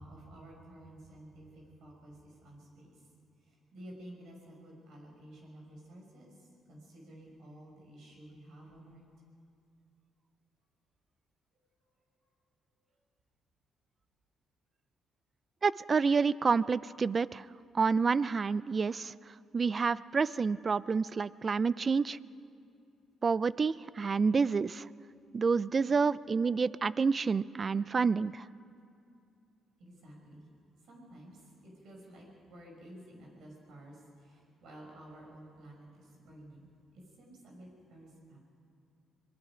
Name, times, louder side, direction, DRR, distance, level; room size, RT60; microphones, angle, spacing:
voice 1, 0.0-3.0 3.4-9.0 29.8-30.5 30.8-38.4, right 1 dB, 75° right, 0 dB, 6.1 m, -52 dB
voice 2, 15.6-17.4 17.7-19.1 19.5-22.2 23.2-24.9 25.3-28.4, right 5 dB, 35° right, 19 dB, 0.4 m, -28 dB
26.0 x 19.5 x 5.1 m, 2.5 s
cardioid pair, 90°, 0 cm